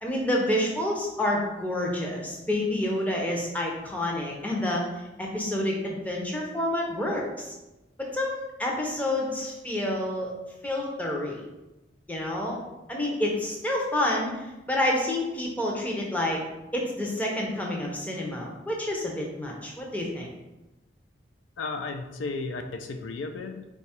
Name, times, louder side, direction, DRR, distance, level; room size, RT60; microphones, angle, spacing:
voice 1, 0.0-4.8 5.2-7.5 8.0-10.3 10.6-11.4 12.1-12.6 12.9-16.4 16.7-20.3, left 1 dB, 10° left, -2 dB, 0.5 m, -28 dB
voice 2, 21.6-23.7, left 3 dB, 80° left, 6 dB, 0.4 m, -34 dB
3.9 x 2.3 x 4.2 m, 1.0 s
head